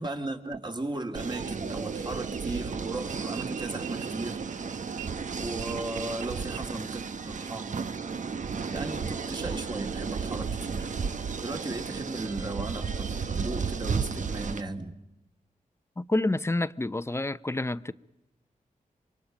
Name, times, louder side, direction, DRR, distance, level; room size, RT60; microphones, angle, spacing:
voice 1, 0.0-4.4 5.3-7.7 8.6-10.9 11.4-14.9, right 2 dB, 30° right, 2.6 m, -36 dB
sound 1, 1.1-14.6, right 5 dB, 60° right, 1.0 m, -33 dB
voice 2, 16.0-17.9, left 2 dB, 20° left, 0.7 m, -28 dB
27.0 x 24.0 x 5.3 m
cardioid pair, 70°, 14 cm